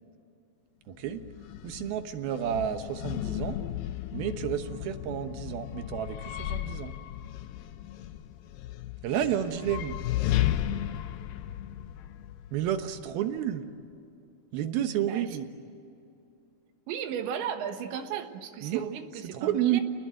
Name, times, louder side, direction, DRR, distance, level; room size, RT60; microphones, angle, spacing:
voice 1, 0.9-1.3 1.6-3.6 4.1-7.0 9.0-10.0 12.5-13.7 14.5-15.5 18.6-19.8, right 10 dB, 70° right, 8 dB, 2.7 m, -31 dB
sound 1, 1.0-13.1, left 12 dB, 80° left, 2.1 m, -34 dB
voice 2, 16.9-19.8, right 8 dB, 90° right, 7 dB, 3.7 m, -35 dB
29.5 x 20.0 x 9.3 m, 2.5 s
omnidirectional pair, 5.0 m